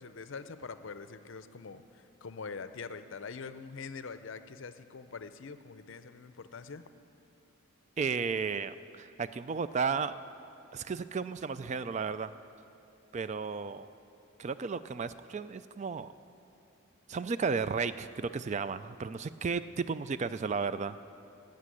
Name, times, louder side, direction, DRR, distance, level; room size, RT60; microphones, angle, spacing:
voice 1, 0.0-6.8, left 5 dB, 60° left, 11 dB, 0.6 m, -44 dB
voice 2, 8.0-10.1 10.7-12.3 13.1-13.9 14.4-16.1 17.1-21.0, right 5 dB, 35° right, 14 dB, 0.3 m, -33 dB
12.5 x 8.5 x 9.8 m, 2.8 s
head